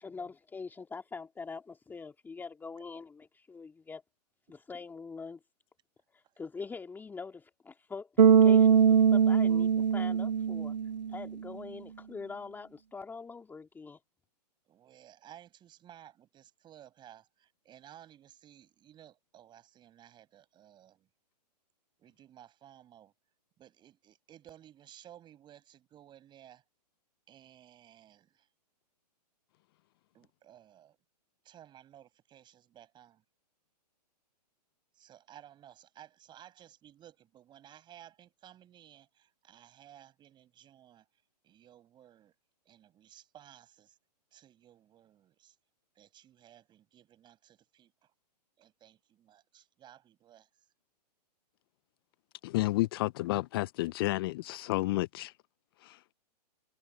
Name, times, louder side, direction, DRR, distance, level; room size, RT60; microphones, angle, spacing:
voice 1, 0.0-4.0 4.5-5.4 6.1-8.1 8.4-10.7 11.1-14.0, left 4 dB, 10° left, 2.0 m, -43 dB
Bass guitar, 8.2-11.3, right 7 dB, 90° right, 0.7 m, -22 dB
voice 2, 14.7-21.1 22.0-23.1 23.6-26.6 27.3-28.5 30.1-31.0 31.4-33.2 34.9-41.0 41.4-42.3 42.7-44.0 44.3-45.5 46.0-47.9 48.6-50.5, right 11 dB, 20° right, 5.5 m, -56 dB
voice 3, 52.4-55.3 55.8-56.0, left 19 dB, 35° left, 0.4 m, -31 dB
hypercardioid pair, 130°, 21 cm